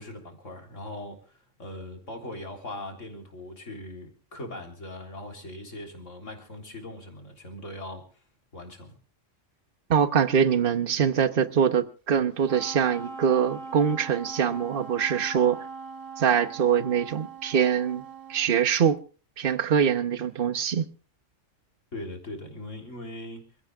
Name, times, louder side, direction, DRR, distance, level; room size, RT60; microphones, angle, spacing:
voice 1, 0.0-8.0 8.5-8.9 21.9-23.5, left 1 dB, 85° left, 4.0 m, -40 dB
voice 2, 9.9-15.6 16.2-18.0 18.3-19.0 19.4-20.9, right 8 dB, 50° right, 1.1 m, -23 dB
Wind instrument woodwind instrument, 12.4-18.5, right 5 dB, 85° right, 2.1 m, -41 dB
27.5 x 16.5 x 2.5 m
omnidirectional pair, 1.3 m